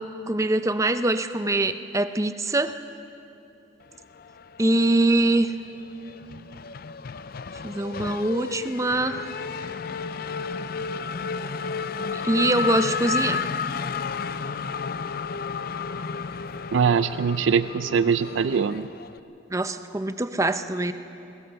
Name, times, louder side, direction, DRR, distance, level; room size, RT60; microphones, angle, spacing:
voice 1, 0.3-2.8 4.6-5.5 7.6-9.3 12.2-13.4 19.5-20.9, right 2 dB, 15° right, 10 dB, 0.6 m, -23 dB
Race car auto racing / Accelerating revving vroom, 4.2-5.2 5.5-19.2, left 5 dB, 50° left, 0.5 m, -32 dB
voice 2, 16.7-18.9, right 6 dB, 75° right, 13 dB, 0.4 m, -22 dB
21.5 x 19.0 x 6.8 m, 2.8 s
head